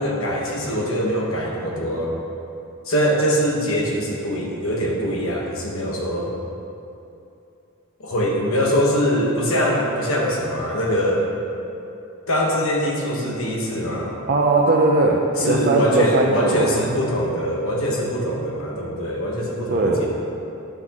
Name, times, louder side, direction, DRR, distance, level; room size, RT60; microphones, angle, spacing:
voice 1, 0.0-2.1 2.9-6.3 8.0-11.3 12.3-14.1 15.4-20.1, equal, 70° left, -2 dB, 1.2 m, -23 dB
voice 2, 14.3-16.8 19.7-20.0, right 2 dB, 45° right, -1 dB, 0.6 m, -19 dB
9.6 x 6.2 x 3.0 m, 2.7 s
head